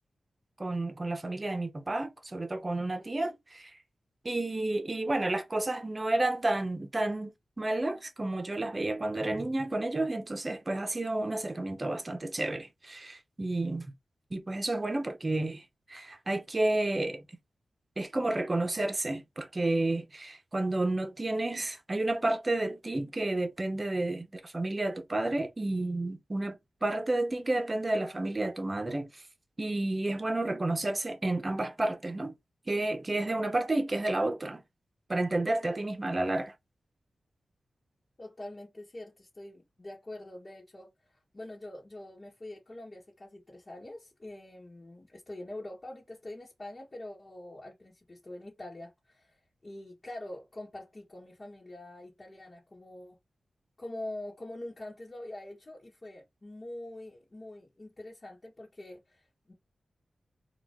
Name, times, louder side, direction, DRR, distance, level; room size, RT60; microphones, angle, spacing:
voice 1, 0.6-3.7 4.2-7.3 7.6-13.9 14.3-17.2 18.0-29.1 29.6-32.3 32.7-34.6 35.1-36.5, right 2 dB, 25° right, 1.1 m, -31 dB
voice 2, 2.8-3.4 38.2-53.2 53.8-59.5, left 1 dB, 30° left, 1.7 m, -45 dB
4.5 x 2.7 x 3.7 m
wide cardioid pair, 100°, 0 cm